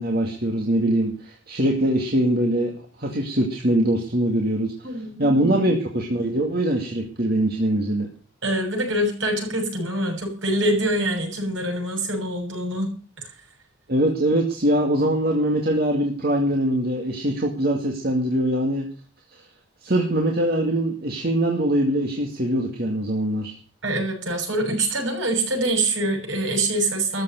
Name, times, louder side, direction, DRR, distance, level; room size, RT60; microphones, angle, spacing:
voice 1, 0.0-2.7 3.0-4.7 5.2-8.1 13.9-18.9 19.8-23.6, right 1 dB, 50° right, 0 dB, 2.2 m, -22 dB
voice 2, 4.8-5.6 8.4-13.3 23.8-27.2, right 1 dB, 70° right, 2 dB, 7.3 m, -25 dB
14.0 x 7.4 x 9.1 m, 0.40 s
head